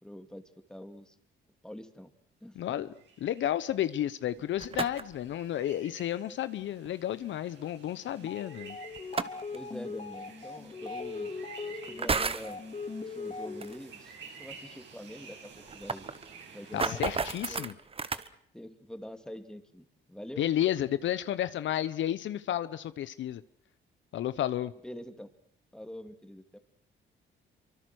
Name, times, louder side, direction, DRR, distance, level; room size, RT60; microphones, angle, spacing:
voice 1, 0.0-1.1 1.6-2.1 2.4-2.9 9.5-11.4 11.7-12.6 12.9-16.1 16.5-17.7 18.5-20.5 24.8-25.3 25.7-26.6, left 1 dB, 5° left, 2.5 m, -45 dB
voice 2, 2.6-2.9 3.2-8.8 16.7-17.7 20.4-23.4 24.1-24.7, left 11 dB, 70° left, 0.9 m, -32 dB
sound 1, 2.8-17.3, right 5 dB, 65° right, 7.8 m, -52 dB
sound 2, 4.4-5.2 6.9-7.0 9.0-9.6 10.7-10.8 11.8-12.5 13.6-13.8 14.1-14.2 14.5-14.6 14.8-14.9 15.4-18.3, right 4 dB, 30° right, 1.2 m, -33 dB
sound 3, 8.1-13.9, left 4 dB, 35° left, 3.9 m, -40 dB
25.5 x 24.5 x 6.4 m
cardioid pair, 90°, 20 cm